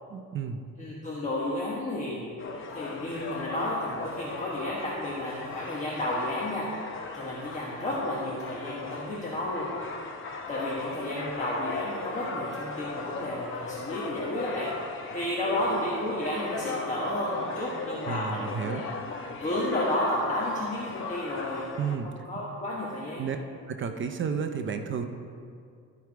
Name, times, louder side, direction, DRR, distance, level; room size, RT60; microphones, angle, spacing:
voice 1, 0.1-0.6 18.1-18.8 21.8-22.1 23.2-23.4 23.7-25.1, right 6 dB, 35° right, 7 dB, 0.5 m, -31 dB
voice 2, 0.8-2.3 2.7-6.7 7.1-9.7 10.5-14.7 15.1-18.8 19.4-21.7 22.0-23.2, left 1 dB, 20° left, -6 dB, 1.2 m, -32 dB
sound 1, 2.4-22.0, left 3 dB, 35° left, 0.8 m, -38 dB
13.0 x 4.6 x 4.7 m, 2.3 s
cardioid pair, 145°, 34 cm